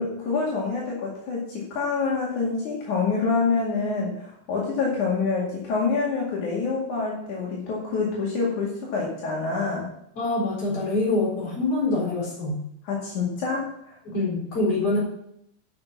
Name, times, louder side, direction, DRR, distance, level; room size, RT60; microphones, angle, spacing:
voice 1, 0.0-9.9 12.8-14.0 14.6-14.7, left 4 dB, 80° left, -4 dB, 3.7 m, -26 dB
voice 2, 10.2-12.6 14.1-15.0, left 2 dB, 50° left, -4 dB, 5.1 m, -25 dB
9.7 x 5.9 x 8.2 m, 0.75 s
omnidirectional pair, 3.4 m